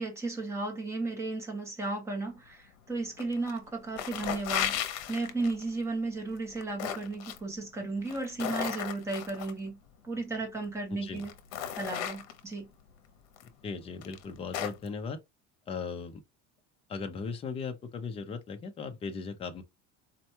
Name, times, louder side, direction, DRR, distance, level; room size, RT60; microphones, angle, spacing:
voice 1, 0.0-9.8 10.0-11.3 11.7-12.7, right 3 dB, 10° right, 0.8 m, -34 dB
sound 1, 3.2-3.6 3.9-5.6 6.4-7.4 8.0-9.5 10.5-10.6 11.1-12.5 13.4-13.5 14.0-14.9, left 10 dB, 80° left, 0.8 m, -35 dB
voice 2, 10.9-11.3 13.6-15.2 15.7-16.2 16.9-19.6, left 5 dB, 20° left, 0.4 m, -37 dB
4.3 x 2.2 x 2.7 m
cardioid pair, 175°, 32 cm